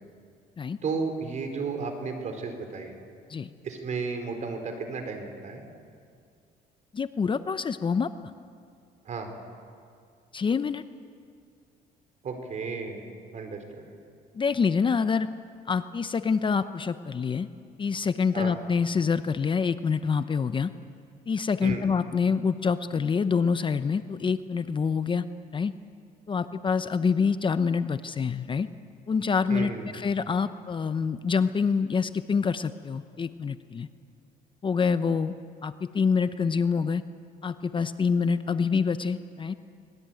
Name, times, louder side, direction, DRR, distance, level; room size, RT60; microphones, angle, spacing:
voice 1, 0.8-2.9 3.6-5.6 9.0-9.3 12.2-13.1 13.3-13.9 18.3-18.6 21.6-21.9 29.5-30.0, right 4 dB, 45° right, 6 dB, 4.4 m, -33 dB
voice 2, 6.9-8.1 10.3-10.8 14.3-15.3 15.7-17.5 17.8-20.7 21.3-25.2 25.5-25.7 26.3-28.7 29.1-33.9 34.6-35.3 35.6-37.0 37.4-39.5, left 5 dB, 30° left, 11 dB, 0.8 m, -26 dB
24.0 x 20.5 x 9.2 m, 2.3 s
cardioid pair, 110°, 17 cm